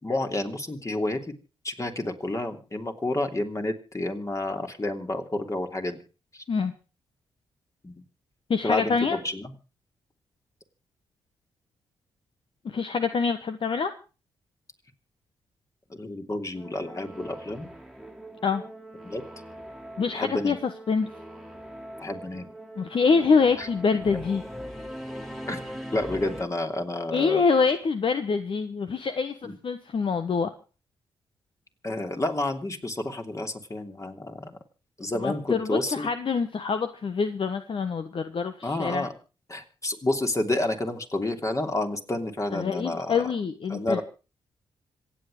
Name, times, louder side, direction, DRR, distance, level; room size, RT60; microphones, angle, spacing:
voice 1, 0.0-1.2 1.6-6.0 6.3-6.4 7.8-8.0 8.6-9.5 15.9-17.7 19.0-19.2 20.1-20.6 22.0-22.5 23.6-23.7 25.5-25.6 25.9-27.4 29.4-29.5 31.8-34.5 35.0-36.1 38.6-39.1 39.5-43.3 43.7-44.0, left 2 dB, 30° left, 5 dB, 3.0 m, -30 dB
voice 2, 8.5-9.2 12.6-13.9 18.4-18.6 20.0-21.1 22.8-24.4 27.1-30.5 35.2-39.1 42.5-44.0, left 5 dB, 50° left, 9 dB, 1.2 m, -25 dB
Singing / Musical instrument, 16.5-26.4, equal, ahead, 2.4 m, -41 dB
26.5 x 8.8 x 5.0 m, 0.35 s
hypercardioid pair, 45°, 11 cm